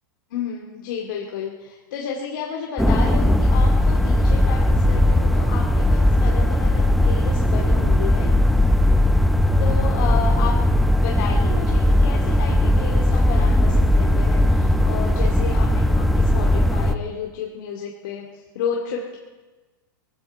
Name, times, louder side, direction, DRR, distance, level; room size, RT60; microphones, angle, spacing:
voice 1, 0.3-8.4 9.6-10.6 11.0-18.3 18.5-19.2, left 6 dB, 65° left, -1 dB, 2.3 m, -31 dB
sound 1, 2.8-17.0, left 1 dB, ahead, 0.6 m, -18 dB
20.5 x 15.5 x 4.5 m, 1.2 s
supercardioid pair, 145°, 12 cm